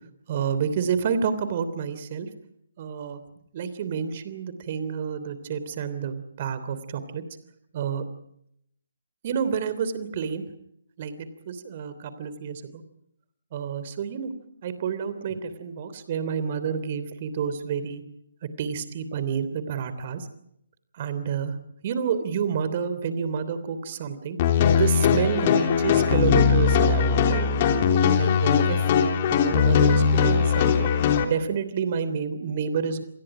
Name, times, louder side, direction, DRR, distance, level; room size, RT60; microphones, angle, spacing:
voice 1, 0.3-2.3 2.8-3.2 3.5-7.2 7.7-8.0 9.2-10.4 11.0-12.8 13.5-14.3 14.6-18.0 18.6-20.3 21.0-21.5 21.8-24.4 24.7-27.5 28.2-30.9 31.3-33.0, right 7 dB, 35° right, 12 dB, 3.2 m, -29 dB
sound 1, 24.4-31.2, left 6 dB, 30° left, 3.2 m, -20 dB
28.5 x 27.5 x 5.0 m, 0.76 s
figure-of-eight pair, 140°, 0 cm